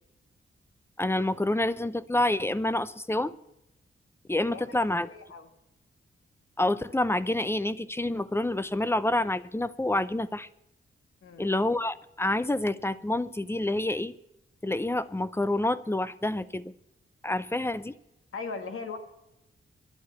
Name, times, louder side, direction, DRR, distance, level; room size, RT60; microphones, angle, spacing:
voice 1, 1.0-3.3 4.3-5.1 6.6-10.5 11.4-14.1 14.6-16.7 17.2-17.9, left 1 dB, 10° left, 16 dB, 0.6 m, -28 dB
voice 2, 5.0-5.5 11.2-11.5 18.3-19.0, left 4 dB, 90° left, 7 dB, 1.9 m, -38 dB
11.0 x 10.5 x 8.3 m, 0.88 s
wide cardioid pair, 110°, 21 cm